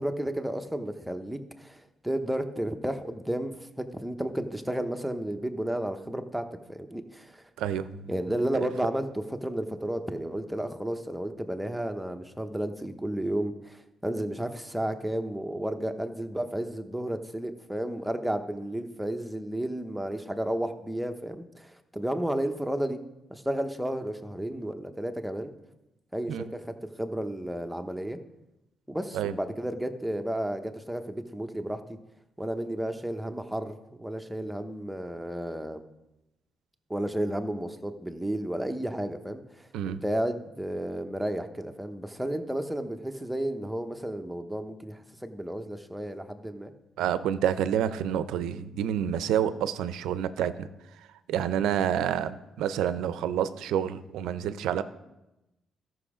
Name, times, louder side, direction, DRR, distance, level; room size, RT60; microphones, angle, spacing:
voice 1, 0.0-7.4 8.1-23.0 23.3-25.5 26.1-28.2 28.9-31.8 32.4-35.8 36.9-46.7, right 1 dB, 5° right, 6 dB, 0.9 m, -32 dB
voice 2, 7.6-8.1 8.5-8.7 26.3-26.4 29.1-29.3 39.7-40.0 47.0-50.7 51.3-54.8, right 9 dB, 85° right, 13 dB, 0.5 m, -28 dB
13.5 x 6.1 x 5.0 m, 0.94 s
cardioid pair, 90°, 0 cm